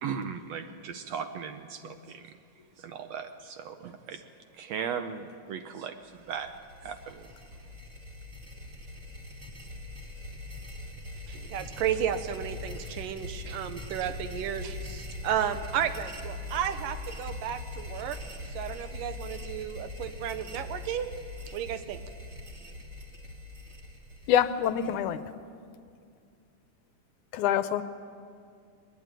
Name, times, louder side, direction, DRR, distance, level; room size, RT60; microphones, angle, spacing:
voice 1, 0.0-2.3 2.8-4.2 4.6-6.5 6.8-7.3, right 7 dB, 70° right, 8 dB, 1.7 m, -37 dB
sound 1, 6.2-25.2, left 2 dB, 30° right, 1.8 m, -42 dB
voice 2, 11.3-18.2 18.4-21.1 21.5-22.0, right 9 dB, 90° right, 10 dB, 2.7 m, -33 dB
voice 3, 24.3-25.2 27.3-27.8, left 10 dB, 75° left, 12 dB, 2.1 m, -25 dB
22.0 x 20.5 x 9.0 m, 2.4 s
omnidirectional pair, 3.7 m